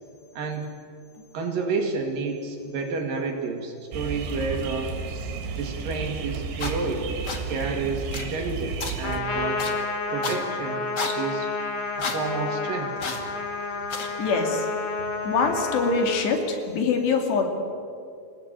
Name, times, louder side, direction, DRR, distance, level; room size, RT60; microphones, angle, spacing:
voice 1, 0.3-0.7 1.3-4.9 5.5-7.1 7.5-9.7 10.1-10.9 11.1-11.5 12.0-12.9, right 4 dB, 55° right, 3 dB, 3.4 m, -30 dB
sound 1, 3.9-9.2, right 5 dB, 75° right, 4.1 m, -32 dB
sound 2, 6.6-6.7 7.2-7.4 8.1-8.3 8.8-8.9 9.6-9.7 10.2-10.4 11.0-11.1 12.0-12.2 13.0-13.2 13.9-14.1, left 3 dB, 40° left, 1.6 m, -30 dB
Trumpet, 9.0-16.3, left 3 dB, 55° left, 1.7 m, -30 dB
voice 2, 14.2-14.7 15.2-17.4, left 4 dB, 75° left, 4 dB, 4.5 m, -24 dB
27.0 x 16.5 x 9.0 m, 2.4 s
omnidirectional pair, 5.0 m